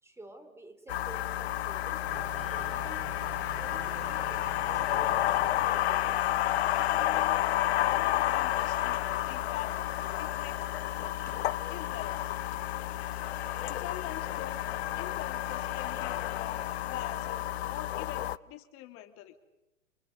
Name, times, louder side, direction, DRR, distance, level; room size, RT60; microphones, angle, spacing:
voice 1, 0.0-3.1 3.6-6.2, right 1 dB, 5° right, 7 dB, 3.9 m, -49 dB
sound 1, 0.9-16.6, left 5 dB, 85° left, 2.0 m, -54 dB
sound 2, 0.9-18.4, left 13 dB, 55° left, 0.9 m, -31 dB
sound 3, 2.1-9.7 11.1-11.4, right 6 dB, 55° right, 5.6 m, -50 dB
voice 2, 7.1-10.7 11.7-12.2 13.6-14.7 15.0-17.4 17.7-19.3, left 12 dB, 35° left, 9 dB, 2.8 m, -44 dB
29.5 x 28.5 x 6.7 m, 0.95 s
figure-of-eight pair, 110°, 39 cm